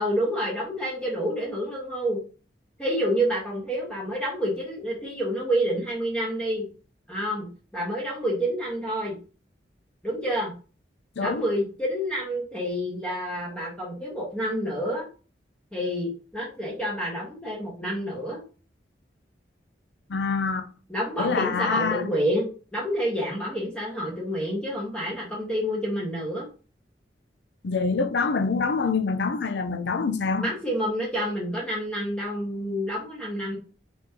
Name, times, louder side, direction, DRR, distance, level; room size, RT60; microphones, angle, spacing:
voice 1, 0.0-2.2 2.8-6.7 7.1-7.5 7.7-9.2 10.0-10.5 11.2-15.1 15.7-18.4 20.9-26.5 30.4-33.6, equal, 5° left, 1.2 m, -28 dB
voice 2, 20.1-20.7 21.2-22.1 27.6-30.5, left 4 dB, 75° left, 0.5 m, -25 dB
4.2 x 3.1 x 3.5 m
head